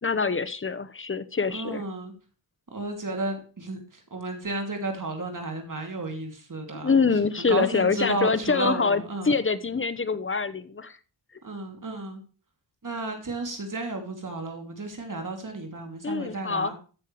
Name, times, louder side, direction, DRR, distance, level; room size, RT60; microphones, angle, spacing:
voice 1, 0.0-1.8 6.8-11.0 16.0-16.7, left 4 dB, 30° left, 13 dB, 0.9 m, -25 dB
voice 2, 1.5-2.1 2.7-3.8 4.1-6.9 7.4-9.4 11.4-12.2 12.8-16.7, right 2 dB, 45° right, 3 dB, 2.5 m, -32 dB
14.0 x 6.5 x 3.1 m, 0.37 s
cardioid pair, 60°, 44 cm